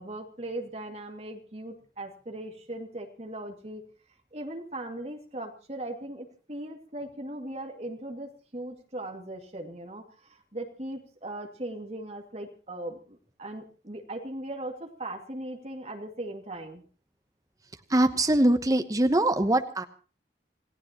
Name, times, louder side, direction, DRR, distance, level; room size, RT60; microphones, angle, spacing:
voice 1, 0.0-3.8 4.3-16.8, right 1 dB, 35° right, 2 dB, 2.4 m, -39 dB
voice 2, 17.9-19.8, right 1 dB, 20° right, 7 dB, 1.0 m, -23 dB
27.5 x 16.5 x 3.0 m, 0.37 s
head